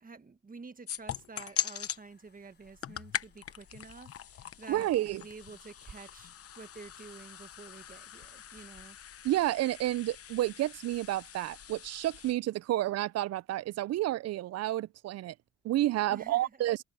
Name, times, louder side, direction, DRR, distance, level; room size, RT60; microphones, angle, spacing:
voice 1, 0.0-9.0 16.1-16.6, right 4 dB, 30° right, 1.6 m, -49 dB
sound 1, 0.9-2.0 2.6-12.3, left 9 dB, 50° left, 1.0 m, -41 dB
sound 2, 1.8-11.5, left 5 dB, 35° left, 5.7 m, -70 dB
voice 2, 4.7-5.2 9.2-15.3 15.6-16.8, right 14 dB, 55° right, 0.4 m, -30 dB
cardioid pair, 90°, 30 cm